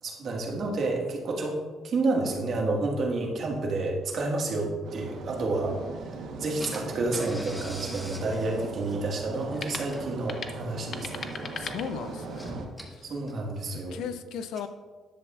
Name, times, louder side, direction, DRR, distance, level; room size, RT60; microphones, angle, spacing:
voice 1, 0.0-1.6 1.8-5.7 6.4-11.1 13.0-14.0, right 2 dB, 55° right, 0 dB, 1.6 m, -29 dB
sound 1, 4.8-12.7, right 4 dB, 80° right, 1.0 m, -39 dB
Car / Engine, 6.1-6.2 6.6-14.0, equal, ahead, 1.3 m, -45 dB
sound 2, 9.5-12.5, left 5 dB, 45° left, 0.7 m, -42 dB
voice 2, 11.4-12.5 12.9-13.1 13.9-14.7, left 7 dB, 85° left, 11 dB, 0.5 m, -36 dB
11.0 x 7.2 x 2.4 m, 1.4 s
cardioid pair, 105°, 0 cm